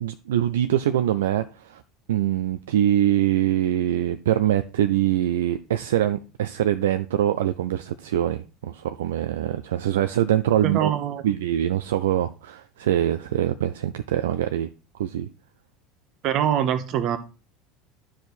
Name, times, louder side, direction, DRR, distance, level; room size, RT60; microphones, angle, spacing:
voice 1, 0.0-1.8 2.1-10.9 11.2-14.7 15.0-15.3, right 11 dB, 70° right, 0.3 m, -23 dB
voice 2, 10.6-11.3 16.2-17.2, right 10 dB, 50° right, 1.0 m, -24 dB
10.0 x 4.9 x 4.2 m
figure-of-eight pair, 70°, 0 cm